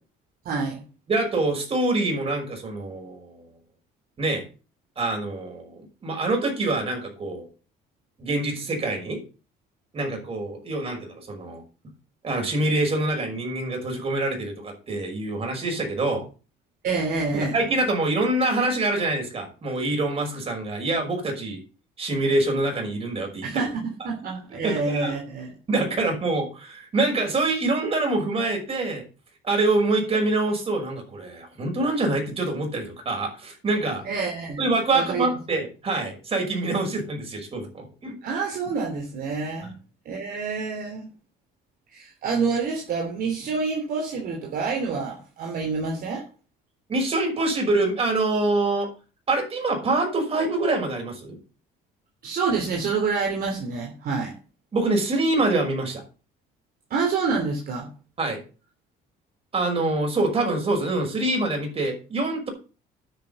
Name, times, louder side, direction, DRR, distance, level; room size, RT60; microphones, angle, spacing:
voice 1, 0.4-0.8 16.8-17.5 23.4-25.5 34.0-34.6 34.9-35.3 38.2-39.7 40.0-41.1 41.9-46.2 52.2-54.3 56.9-57.9, right 4 dB, 60° right, 1 dB, 3.1 m, -27 dB
voice 2, 1.1-3.4 4.2-4.4 5.0-7.5 8.2-9.2 9.9-11.6 12.2-16.3 17.3-21.6 22.0-23.4 24.6-25.1 25.7-29.0 29.4-34.0 34.6-38.1 46.9-48.9 49.3-51.4 54.7-56.0 58.2-58.4 59.5-62.5, right 2 dB, 35° right, 2 dB, 5.9 m, -25 dB
10.5 x 6.6 x 7.1 m, 0.35 s
cardioid pair, 110°, 17 cm